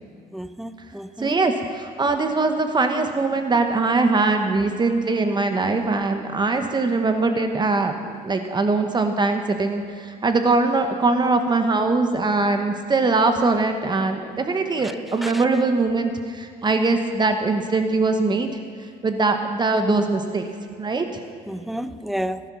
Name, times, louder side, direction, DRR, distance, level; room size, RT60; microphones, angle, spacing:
voice 1, 0.3-1.3 15.2-15.4 21.5-22.4, equal, ahead, 12 dB, 0.6 m, -31 dB
voice 2, 1.2-18.5 19.0-20.5 20.8-21.0, right 3 dB, 25° right, 6 dB, 1.2 m, -22 dB
18.5 x 11.0 x 6.3 m, 2.2 s
cardioid pair, 110°, 17 cm